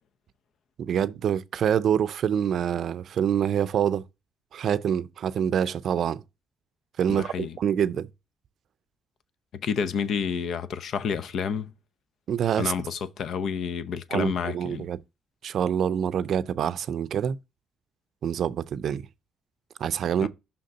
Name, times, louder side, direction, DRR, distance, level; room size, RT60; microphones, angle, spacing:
voice 1, 0.8-4.0 4.5-6.2 7.0-7.3 7.6-8.1 12.3-12.7 14.1-15.0 15.4-17.4 18.2-19.0 19.8-20.3, right 9 dB, 65° right, 0.5 m, -26 dB
voice 2, 7.1-7.6 9.6-11.7 12.6-14.9 20.2-20.3, left 6 dB, 65° left, 0.6 m, -29 dB
5.8 x 3.8 x 5.3 m
cardioid pair, 90°, 0 cm